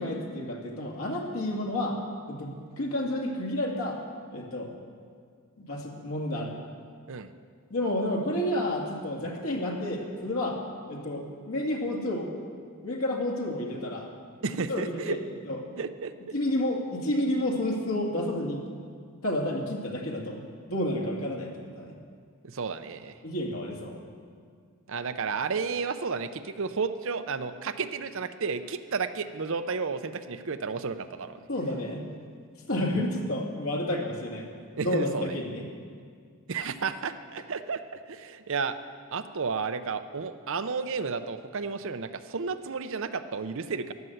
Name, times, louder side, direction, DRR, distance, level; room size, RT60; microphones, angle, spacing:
voice 1, 0.0-2.0 2.3-4.0 4.3-4.7 5.6-6.5 7.7-10.6 10.9-12.3 12.8-14.1 14.7-15.2 15.5-15.7 16.3-18.6 19.2-20.4 20.7-21.5 21.8-21.9 23.2-24.0 31.5-32.0 32.7-34.5 34.8-35.6, left 1 dB, 65° left, 1 dB, 2.2 m, -30 dB
voice 2, 14.4-15.2 15.8-16.3 22.4-23.2 24.9-31.4 34.8-35.4 36.5-38.8 39.1-43.9, right 5 dB, 60° right, 10 dB, 0.6 m, -32 dB
13.5 x 11.0 x 7.9 m, 2.1 s
head